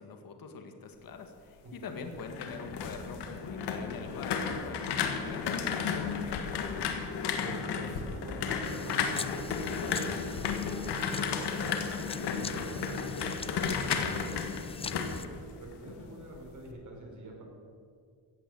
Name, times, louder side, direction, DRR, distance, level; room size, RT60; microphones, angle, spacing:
voice 1, 0.0-6.9, left 4 dB, 60° left, 6 dB, 1.7 m, -44 dB
voice 2, 1.6-2.0 7.4-14.3 14.7-15.2 15.5-17.4, right 2 dB, 50° right, -1 dB, 4.5 m, -46 dB
sound 1, 2.0-16.0 16.3-16.7, left 6 dB, 85° left, 1.6 m, -33 dB
sound 2, 8.6-15.3, left 5 dB, 15° left, 0.3 m, -44 dB
16.0 x 8.2 x 7.8 m, 2.2 s
cardioid pair, 110°, 39 cm